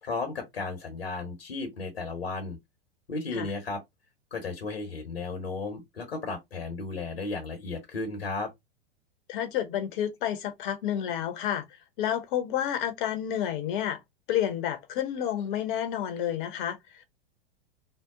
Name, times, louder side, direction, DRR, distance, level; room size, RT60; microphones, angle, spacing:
voice 1, 0.0-2.6 3.1-3.8 4.3-8.5, left 3 dB, 90° left, 1.1 m, -34 dB
voice 2, 9.3-11.6 12.0-14.0 14.3-17.0, left 10 dB, 55° left, 0.9 m, -30 dB
2.8 x 2.0 x 3.6 m
hypercardioid pair, 95°, 30 cm